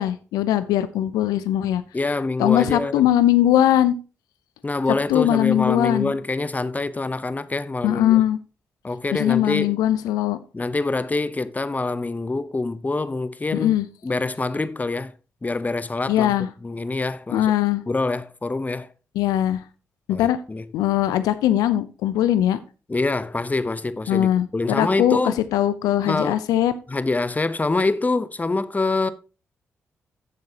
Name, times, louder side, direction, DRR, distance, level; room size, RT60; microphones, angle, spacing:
voice 1, 0.0-1.8 2.4-4.0 5.1-6.1 7.8-8.4 9.1-10.4 13.5-13.9 16.1-16.5 17.3-17.8 19.2-19.6 20.1-20.4 20.7-22.6 24.1-26.7, left 12 dB, 80° left, 0.5 m, -20 dB
voice 2, 1.9-3.1 4.6-8.2 8.8-9.8 10.5-13.8 14.0-15.1 15.4-16.3 16.6-17.5 17.9-18.9 20.1-20.7 22.9-25.4 26.1-26.4 26.9-29.1, left 3 dB, 25° left, 0.8 m, -25 dB
13.0 x 7.5 x 2.9 m
hypercardioid pair, 40°, 6 cm